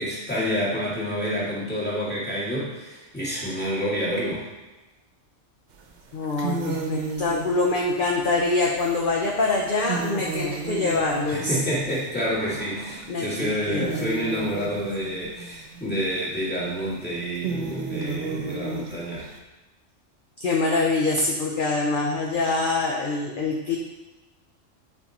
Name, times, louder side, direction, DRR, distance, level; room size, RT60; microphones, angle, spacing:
voice 1, 0.0-4.4 11.3-19.3, equal, 10° left, -8 dB, 2.2 m, -28 dB
sound 1, 5.8-5.9 6.2-13.2 13.5-19.4, right 4 dB, 65° right, 1.1 m, -34 dB
voice 2, 6.1-11.6 13.1-14.0 20.4-23.8, left 3 dB, 50° left, -1 dB, 0.9 m, -24 dB
8.3 x 4.7 x 4.2 m, 1.1 s
omnidirectional pair, 1.3 m